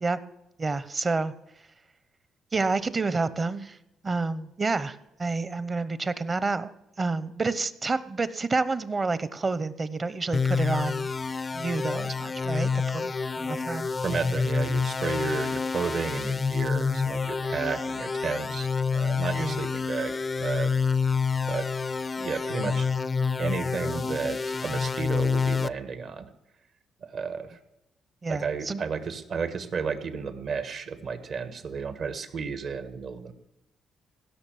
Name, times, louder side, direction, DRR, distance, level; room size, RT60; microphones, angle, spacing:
voice 1, 0.6-1.3 2.5-3.8 4.0-6.7 7.0-11.1 11.5-13.9 19.4-19.6 28.2-28.8, right 3 dB, 30° right, 15 dB, 0.9 m, -29 dB
sound 1, 10.3-25.7, left 5 dB, 30° left, 0.5 m, -28 dB
voice 2, 14.0-18.7 18.9-20.7 21.5-21.7 22.2-22.9 23.4-26.3 27.0-27.6 28.3-33.3, right 5 dB, 60° right, 10 dB, 1.7 m, -32 dB
16.5 x 6.6 x 9.3 m, 0.90 s
cardioid pair, 90°, 0 cm